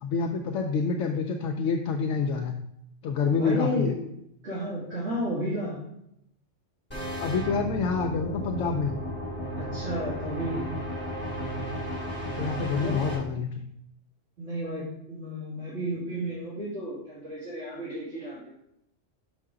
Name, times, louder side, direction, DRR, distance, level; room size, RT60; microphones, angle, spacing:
voice 1, 0.0-2.6 3.0-4.0 7.2-9.0 12.4-13.7, left 5 dB, 75° left, 3 dB, 0.9 m, -27 dB
voice 2, 3.3-3.9 4.4-5.8 9.5-10.7 12.8-13.1 14.4-18.5, equal, 60° right, -10 dB, 2.7 m, -32 dB
sound 1, 6.9-13.2, right 1 dB, 10° left, 2.6 m, -34 dB
6.6 x 5.3 x 3.7 m, 0.78 s
omnidirectional pair, 1.3 m